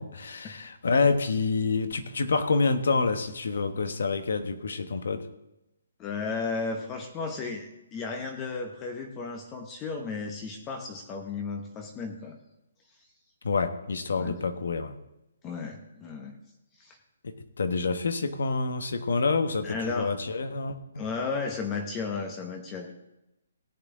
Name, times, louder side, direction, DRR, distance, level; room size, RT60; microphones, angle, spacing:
voice 1, 0.0-5.3 13.4-15.0 17.2-21.0, left 4 dB, 75° left, 9 dB, 1.3 m, -27 dB
voice 2, 6.0-12.4 14.2-14.4 15.4-16.4 16.8-17.0 19.6-20.2 21.0-22.9, left 4 dB, 15° left, 4 dB, 0.9 m, -34 dB
17.5 x 8.5 x 3.8 m, 0.89 s
hypercardioid pair, 165°, 0 cm